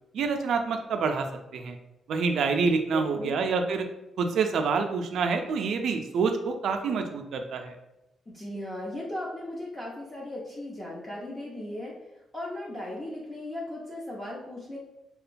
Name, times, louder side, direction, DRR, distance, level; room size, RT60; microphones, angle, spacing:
voice 1, 0.1-1.3 1.5-1.8 2.1-3.8 4.2-7.7, right 5 dB, 65° right, 5 dB, 0.3 m, -27 dB
voice 2, 2.9-3.4 8.3-11.9 12.3-14.8, left 1 dB, 20° left, -5 dB, 0.4 m, -37 dB
2.8 x 2.2 x 2.5 m, 0.92 s
cardioid pair, 160°, 0 cm